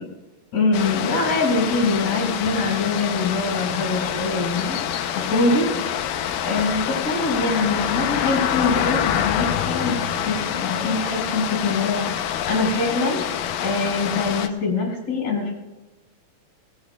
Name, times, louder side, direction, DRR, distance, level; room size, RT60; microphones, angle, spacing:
voice 1, 0.5-4.8 5.1-5.7 6.4-9.9 10.2-13.2 13.6-15.5, left 3 dB, 55° left, 0 dB, 6.9 m, -23 dB
sound 1, 0.7-14.5, left 9 dB, 75° left, 2.4 m, -26 dB
25.0 x 20.0 x 2.4 m, 1.1 s
omnidirectional pair, 4.3 m